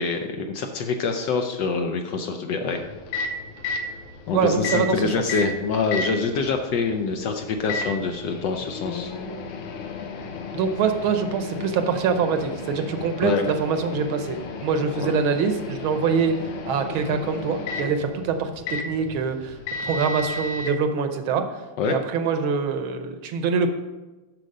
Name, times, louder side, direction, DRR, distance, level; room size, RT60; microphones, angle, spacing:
voice 1, 0.0-2.8 3.7-3.8 4.3-9.1 13.2-13.4 14.9-15.1 21.8-22.0, left 4 dB, 70° left, 5 dB, 1.1 m, -25 dB
Microwave oven, 2.7-20.7, left 3 dB, 85° left, 1.7 m, -34 dB
voice 2, 4.3-5.1 10.5-21.6 21.9-23.7, right 5 dB, 75° right, 7 dB, 1.5 m, -24 dB
7.7 x 6.2 x 5.3 m, 1.2 s
omnidirectional pair, 2.4 m